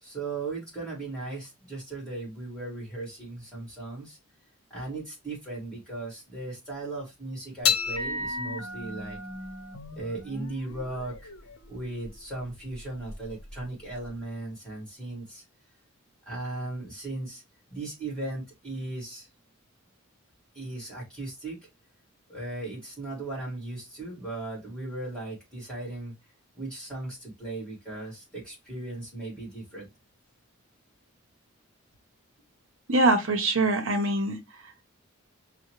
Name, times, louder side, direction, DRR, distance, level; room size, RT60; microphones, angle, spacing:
voice 1, 0.0-4.2 4.7-9.2 9.9-11.3 11.7-15.4 16.3-17.4 17.7-19.3 20.5-21.6 22.3-26.1 26.6-29.9, right 2 dB, 5° left, 1.9 m, -37 dB
sound 1, 7.6-14.2, left 5 dB, 90° left, 0.7 m, -34 dB
voice 2, 32.9-34.4, right 2 dB, 65° right, 0.8 m, -23 dB
5.4 x 2.2 x 3.0 m
head